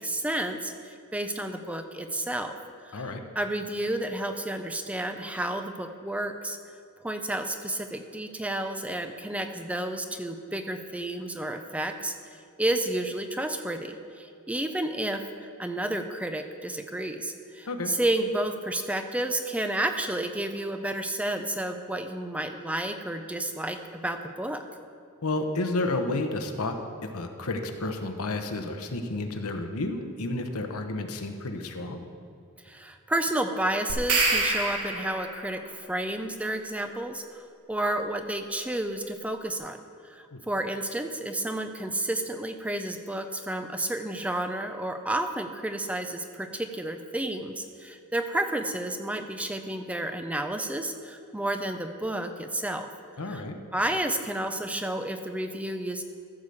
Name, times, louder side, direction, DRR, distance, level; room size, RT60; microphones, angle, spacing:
voice 1, 0.0-2.5 2.8-6.6 7.0-12.1 12.6-24.6 32.6-39.8 40.0-52.9 53.2-53.4 53.7-56.0, right 1 dB, 5° right, 7 dB, 0.5 m, -31 dB
voice 2, 25.2-26.8 27.1-32.0 40.3-40.4 53.2-53.6, left 2 dB, 85° left, 5 dB, 1.0 m, -31 dB
sound 1, 33.9-35.5, right 3 dB, 85° right, 1.6 m, -26 dB
14.0 x 5.0 x 6.9 m, 2.5 s
head